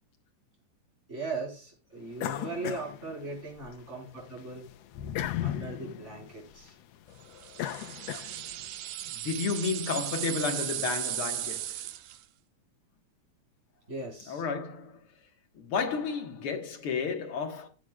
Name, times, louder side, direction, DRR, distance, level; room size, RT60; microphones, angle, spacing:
voice 1, 1.1-4.7 5.4-6.7 13.9-14.4, right 3 dB, 20° right, 4.7 m, -38 dB
sound 1, 2.2-3.7 4.1-8.7, left 12 dB, 75° left, 1.6 m, -37 dB
sound 2, 7.4-12.2, right 13 dB, 85° right, 2.1 m, -36 dB
voice 2, 9.0-11.9 14.3-15.0 15.6-17.7, left 5 dB, 55° left, 2.0 m, -32 dB
15.5 x 7.6 x 2.3 m
omnidirectional pair, 3.5 m